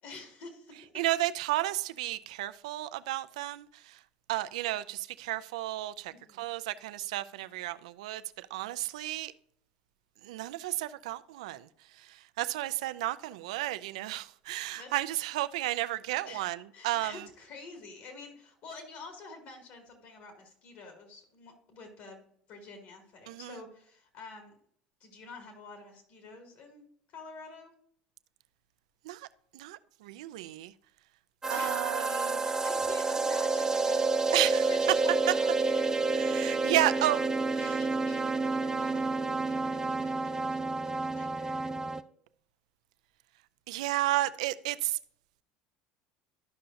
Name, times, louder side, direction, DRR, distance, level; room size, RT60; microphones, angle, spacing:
voice 1, 0.0-1.0 6.1-6.5 14.7-14.9 16.3-24.6 25.0-27.7 31.5-31.8 32.4-34.1 34.4-35.9 36.3-37.2 37.6-41.7, left 3 dB, 60° left, 2.3 m, -49 dB
voice 2, 1.0-4.0 4.3-9.3 10.2-11.7 12.0-17.2 23.3-23.6 29.0-29.3 29.5-30.7 31.5-32.5 34.3-34.7 36.1-37.2 37.5-37.8 43.7-45.0, right 16 dB, 80° right, 0.4 m, -33 dB
sound 1, 31.4-42.0, right 3 dB, 15° right, 0.5 m, -29 dB
12.5 x 5.6 x 2.6 m
hypercardioid pair, 80°, 3 cm